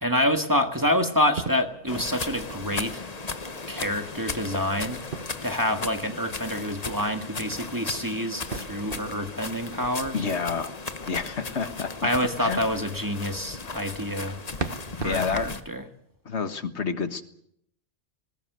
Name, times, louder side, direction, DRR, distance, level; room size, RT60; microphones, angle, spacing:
voice 1, 0.0-3.0 3.7-5.0 5.4-10.2 12.0-14.4 15.0-15.8, left 1 dB, 15° right, 6 dB, 1.8 m, -27 dB
sound 1, 1.1-3.4 5.1-6.2 8.5-11.2 14.6-15.4, right 4 dB, 50° right, 1.4 m, -39 dB
sound 2, 1.9-15.6, left 3 dB, 35° left, 1.3 m, -36 dB
voice 2, 10.1-10.7 11.1-12.1 12.4-12.6 15.0-15.5 16.2-17.2, left 5 dB, 70° left, 10 dB, 1.8 m, -29 dB
20.0 x 20.0 x 8.0 m, 0.71 s
omnidirectional pair, 1.2 m